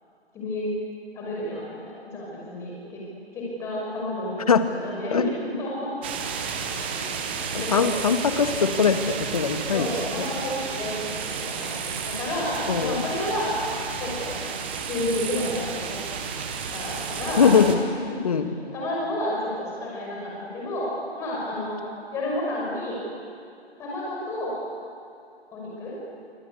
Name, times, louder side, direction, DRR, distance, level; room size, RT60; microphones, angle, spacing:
voice 1, 0.3-0.7 1.1-3.0 3.3-5.9 6.9-8.0 9.7-11.0 11.2-13.6 14.0-14.4 14.9-16.0 16.7-17.5 18.1-18.2 18.4-21.8 22.1-23.0 23.8-24.6 25.5-26.0, left 1 dB, 10° left, -4 dB, 5.8 m, -31 dB
sound 1, 6.0-17.7, right 6 dB, 10° right, 0.9 m, -32 dB
voice 2, 7.7-9.0 9.3-9.9 12.7-13.0 17.4-17.8 18.2-18.5, left 6 dB, 35° left, 9 dB, 1.7 m, -20 dB
26.5 x 26.0 x 8.5 m, 2.5 s
figure-of-eight pair, 155°, 33 cm